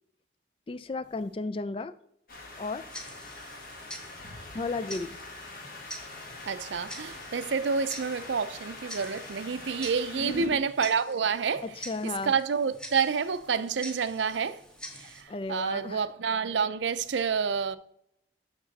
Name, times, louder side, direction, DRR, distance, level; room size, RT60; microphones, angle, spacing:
voice 1, 0.7-2.0 2.6-2.9 4.5-5.2 10.1-10.6 11.6-12.3 15.3-16.0, left 3 dB, 30° left, 0.3 m, -34 dB
sound 1, 2.3-10.5, left 2 dB, 50° left, 1.6 m, -44 dB
Tick-tock, 2.9-15.2, equal, 5° left, 0.8 m, -46 dB
voice 2, 6.5-11.7 12.0-14.6 15.0-17.8, right 6 dB, 85° right, 0.5 m, -29 dB
7.4 x 6.0 x 4.1 m
head